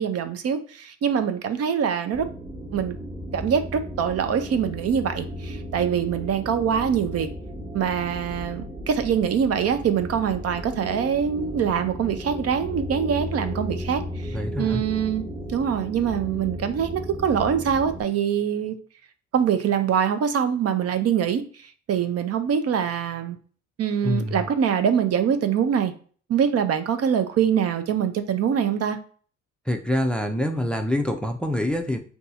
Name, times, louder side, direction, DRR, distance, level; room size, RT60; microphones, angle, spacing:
voice 1, 0.0-2.3 2.7-3.0 3.3-7.3 7.7-18.7 19.3-23.4 23.8-25.9 26.3-29.0, right 8 dB, 55° right, 9 dB, 0.5 m, -24 dB
sound 1, 2.1-18.0, equal, 10° right, 0.9 m, -35 dB
voice 2, 14.3-14.8 24.0-24.5 29.7-32.0, left 1 dB, 5° left, 6 dB, 0.4 m, -25 dB
2.7 x 2.3 x 4.1 m, 0.44 s
cardioid pair, 90°, 30 cm